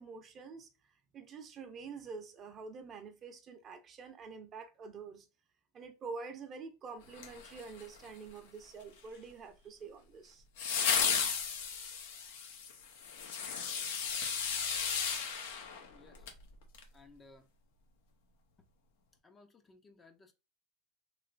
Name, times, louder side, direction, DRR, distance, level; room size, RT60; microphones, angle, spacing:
voice 1, 0.0-5.3 5.7-10.4, right 4 dB, 35° right, 0.7 m, -47 dB
sound 1, 7.1-8.1 10.6-16.4 16.7-16.8, left 6 dB, 80° left, 0.9 m, -34 dB
voice 2, 15.9-16.2 16.9-17.4 19.2-20.3, left 3 dB, 20° left, 0.6 m, -59 dB
3.1 x 2.9 x 2.5 m
supercardioid pair, 115°, 0 cm